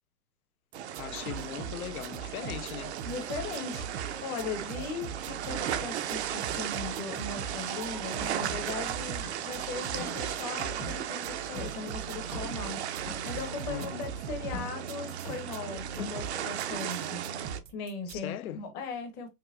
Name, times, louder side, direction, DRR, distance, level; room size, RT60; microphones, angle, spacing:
sound 1, 0.7-17.6, right 10 dB, 45° right, 0.5 m, -36 dB
sound 2, 0.7-18.2, right 7 dB, 80° right, 0.7 m, -42 dB
voice 1, 1.0-3.0 13.7-14.1 18.1-18.6, left 12 dB, 65° left, 0.6 m, -39 dB
voice 2, 3.0-17.2 17.7-19.3, left 4 dB, 25° left, 0.9 m, -39 dB
sound 3, 8.4-8.6 9.2-9.6 9.9-10.2 10.8-11.0 11.5-11.8 12.3-12.7 13.1-13.3 13.8-14.0 14.4-14.9 15.2-15.6 16.0-16.3 16.7-16.8, left 4 dB, 80° left, 2.0 m, -42 dB
5.5 x 2.2 x 2.4 m
hypercardioid pair, 145°, 47 cm